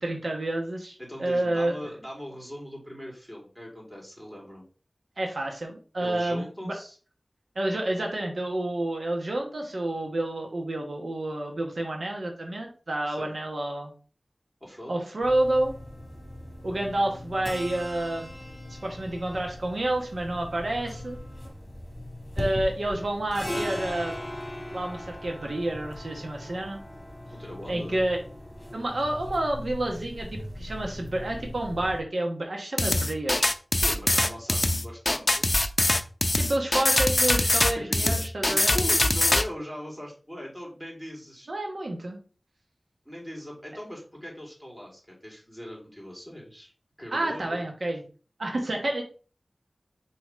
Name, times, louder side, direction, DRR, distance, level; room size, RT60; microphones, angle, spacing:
voice 1, 0.0-1.7 5.2-6.8 7.5-13.9 14.9-15.7 16.6-18.3 18.8-21.2 22.4-24.1 24.7-26.8 27.7-28.2 28.7-33.4 36.4-38.7 41.5-42.2 47.1-48.0 48.4-49.0, right 1 dB, 75° right, 1 dB, 1.1 m, -29 dB
voice 2, 1.0-4.6 6.0-7.0 13.1-13.3 14.6-15.0 27.3-28.0 33.8-35.5 37.7-41.5 43.0-46.7 47.0-47.6, equal, 15° right, -3 dB, 3.0 m, -40 dB
sound 1, 15.2-32.0, left 1 dB, 20° left, 1.9 m, -39 dB
sound 2, 32.8-39.4, left 2 dB, 40° left, 0.5 m, -23 dB
6.2 x 3.0 x 5.0 m, 0.38 s
wide cardioid pair, 70°, 0 cm